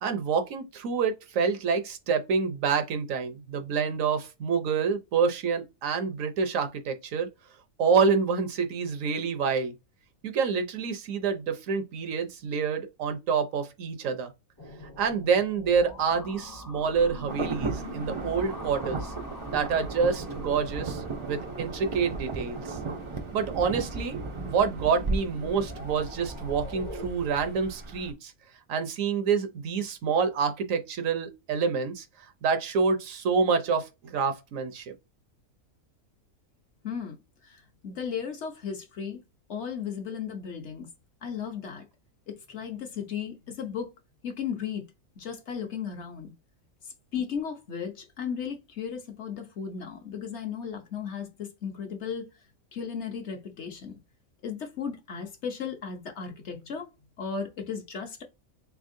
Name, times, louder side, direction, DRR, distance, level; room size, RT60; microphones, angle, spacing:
voice 1, 0.0-7.3 7.8-9.7 10.2-14.3 15.0-19.1 19.5-22.8 23.3-28.3 28.7-32.0 32.4-34.9, right 5 dB, 70° right, 1.0 m, -27 dB
sound 1, 14.6-27.1, left 1 dB, 20° left, 0.5 m, -43 dB
Insect / Thunder / Rain, 17.3-28.1, right 3 dB, 55° right, 0.3 m, -36 dB
voice 2, 36.8-37.2 37.4-39.2 39.5-40.9 41.2-41.8 42.5-43.9 44.2-44.8 45.2-46.3 47.1-52.3 52.7-53.9 54.4-56.9 57.2-58.2, left 7 dB, 55° left, 1.0 m, -35 dB
3.8 x 3.6 x 2.5 m
omnidirectional pair, 1.5 m